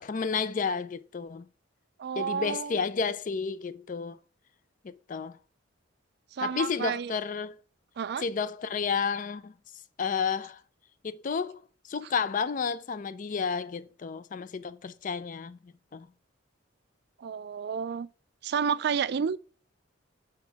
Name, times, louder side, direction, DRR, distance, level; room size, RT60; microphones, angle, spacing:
voice 1, 0.0-1.5 2.2-4.2 4.8-5.3 6.4-7.6 8.2-9.5 10.0-10.6 11.0-11.6 11.9-16.1, left 5 dB, 40° left, 0.4 m, -31 dB
voice 2, 2.0-2.8 6.3-7.1 8.0-8.3 17.2-18.1 18.4-19.4, right 7 dB, 55° right, 0.3 m, -30 dB
6.7 x 5.2 x 3.5 m
head